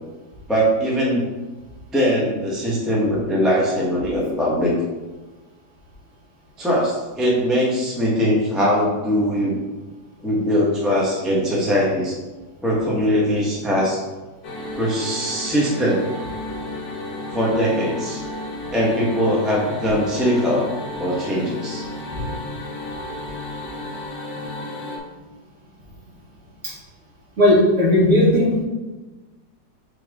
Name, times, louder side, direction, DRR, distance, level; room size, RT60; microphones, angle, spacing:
voice 1, 0.5-1.2 1.9-4.7 6.6-9.5 10.2-12.1 12.6-14.0 14.8-16.0 17.3-18.2 18.7-20.7 21.0-21.8, equal, ahead, -5 dB, 0.9 m, -21 dB
sound 1, 14.4-25.0, left 1 dB, 70° left, 1.7 m, -33 dB
voice 2, 27.4-28.6, left 1 dB, 45° right, -6 dB, 2.0 m, -16 dB
7.3 x 3.7 x 3.6 m, 1.2 s
omnidirectional pair, 1.9 m